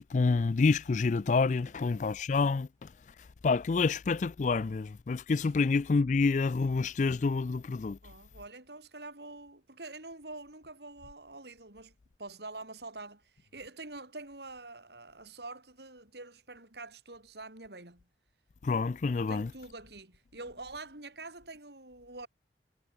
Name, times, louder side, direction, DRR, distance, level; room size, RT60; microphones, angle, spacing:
voice 1, 0.0-2.9 3.4-8.0 18.6-19.5, left 4 dB, 45° left, 0.4 m, -28 dB
voice 2, 1.6-2.2 5.6-5.7 8.0-18.1 19.3-22.3, right 2 dB, 70° right, 5.3 m, -46 dB
head